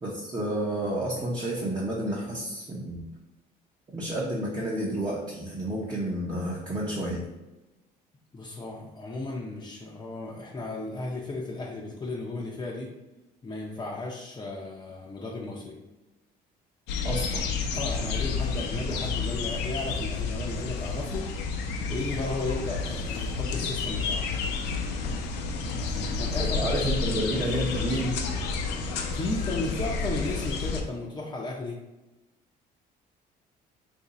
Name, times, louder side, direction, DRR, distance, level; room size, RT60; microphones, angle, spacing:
voice 1, 0.0-3.0 3.9-7.2 17.0-17.4 26.4-28.2, right 1 dB, 25° right, -5 dB, 0.8 m, -30 dB
voice 2, 8.3-12.9 13.4-15.8 17.4-17.5 17.7-21.2 21.9-24.3 25.7-26.9 29.1-31.8, left 2 dB, 25° left, -3 dB, 0.6 m, -35 dB
sound 1, 16.9-30.8, left 4 dB, 85° left, 0.6 m, -30 dB
2.8 x 2.6 x 4.0 m, 1.0 s
cardioid pair, 110°, 17 cm